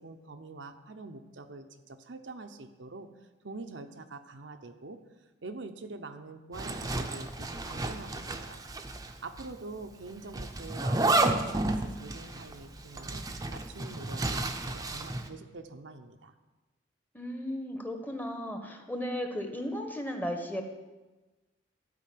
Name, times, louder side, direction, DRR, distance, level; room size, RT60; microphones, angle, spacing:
voice 1, 0.0-3.1 3.4-5.0 5.4-8.6 9.2-14.4 14.7-16.3, right 3 dB, 80° right, 6 dB, 0.8 m, -45 dB
Zipper (clothing), 6.5-9.1 9.4-9.5 10.3-15.3, right 2 dB, 20° right, 0.7 m, -31 dB
voice 2, 17.1-20.6, equal, 10° left, 4 dB, 1.1 m, -35 dB
12.0 x 5.2 x 8.4 m, 1.2 s
head